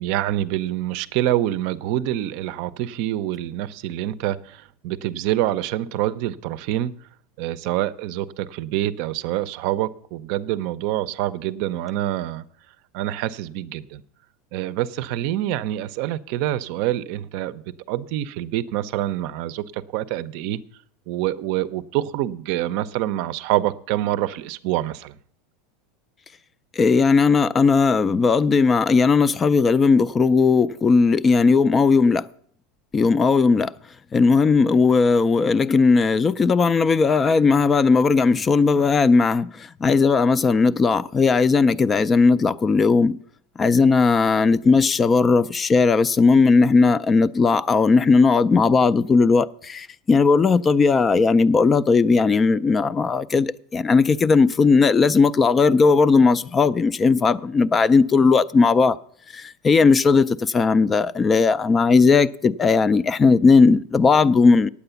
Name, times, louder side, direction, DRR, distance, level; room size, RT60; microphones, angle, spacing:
voice 1, 0.0-6.9 7.4-12.4 12.9-14.0 14.5-17.6 17.9-20.6 21.1-25.2, right 13 dB, 60° right, 0.5 m, -26 dB
voice 2, 26.8-32.3 32.9-33.7 34.1-39.5 39.8-43.2 43.6-59.0 59.3-64.7, left 4 dB, 20° left, 0.3 m, -17 dB
8.9 x 8.4 x 6.9 m
supercardioid pair, 140°, 0 cm